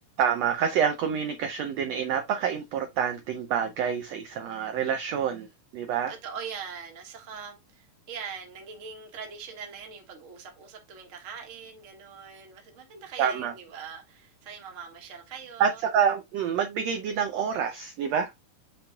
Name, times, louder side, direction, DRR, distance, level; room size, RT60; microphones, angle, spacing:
voice 1, 0.2-5.5 5.7-6.1 13.2-13.5 15.6-18.3, right 7 dB, 75° right, 1.6 m, -27 dB
voice 2, 6.1-15.8, right 6 dB, 35° right, 1.2 m, -42 dB
7.5 x 5.7 x 2.3 m
omnidirectional pair, 3.8 m